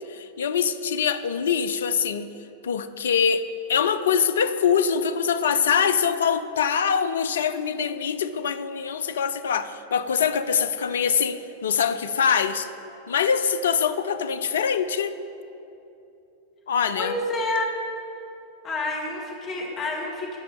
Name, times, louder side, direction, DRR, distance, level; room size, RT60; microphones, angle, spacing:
voice 1, 0.0-2.3 2.6-12.7 13.1-15.1 16.7-17.2, left 7 dB, 65° left, 11 dB, 0.4 m, -24 dB
voice 2, 17.0-17.7 18.6-20.4, left 2 dB, 30° left, -2 dB, 2.0 m, -28 dB
14.5 x 5.4 x 4.1 m, 2.8 s
figure-of-eight pair, 90°, 0 cm